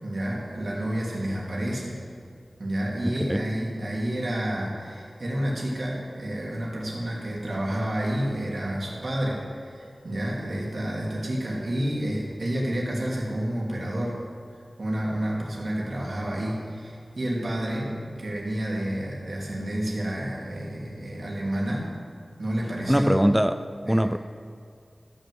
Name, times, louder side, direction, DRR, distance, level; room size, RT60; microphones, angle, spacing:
voice 1, 0.0-1.9 2.6-14.2 14.8-21.9 22.4-23.1 23.8-24.1, right 1 dB, 70° right, -4 dB, 3.1 m, -29 dB
voice 2, 3.0-3.4 22.9-24.2, equal, 5° right, 10 dB, 0.4 m, -23 dB
13.5 x 6.4 x 7.8 m, 2.3 s
wide cardioid pair, 65°, 0 cm